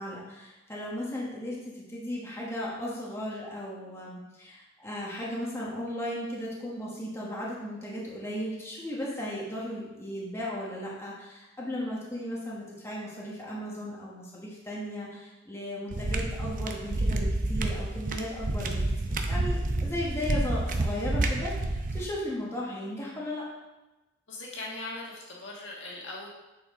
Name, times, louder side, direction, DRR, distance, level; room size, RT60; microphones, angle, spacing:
voice 1, 0.0-18.8 19.1-23.5, left 1 dB, 15° left, -5 dB, 1.3 m, -36 dB
sound 1, 15.9-22.1, right 2 dB, 45° right, 0.6 m, -29 dB
voice 2, 24.3-26.3, left 2 dB, 70° left, -3 dB, 1.7 m, -39 dB
8.5 x 4.5 x 3.7 m, 1.1 s
head